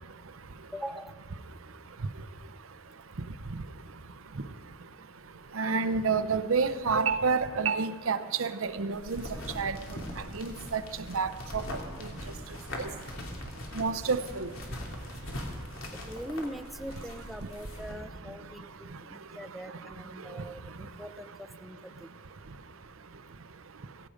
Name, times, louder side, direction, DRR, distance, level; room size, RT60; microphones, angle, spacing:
voice 1, 0.7-1.1 16.1-22.1, equal, ahead, 7 dB, 0.5 m, -42 dB
voice 2, 5.5-9.2 9.6-9.8 10.3-10.8 11.1-11.7 12.8-12.9 13.8-14.5, right 5 dB, 80° right, 11 dB, 0.7 m, -28 dB
sound 1, 8.9-17.9, left 1 dB, 85° left, 2.9 m, -41 dB
17.5 x 16.5 x 5.1 m, 1.5 s
head